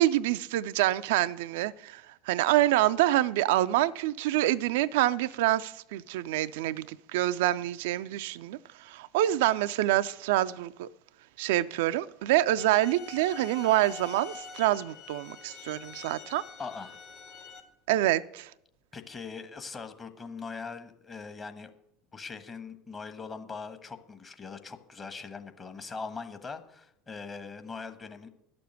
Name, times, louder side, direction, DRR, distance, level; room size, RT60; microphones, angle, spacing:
voice 1, 0.0-10.9 11.4-16.4 17.9-18.5, right 14 dB, 65° right, 0.3 m, -26 dB
sound 1, 12.6-17.6, left 6 dB, 50° left, 1.7 m, -46 dB
voice 2, 16.6-17.0 18.9-21.7 22.1-28.3, left 4 dB, 25° left, 1.3 m, -41 dB
11.5 x 6.9 x 7.9 m
figure-of-eight pair, 70°, 0 cm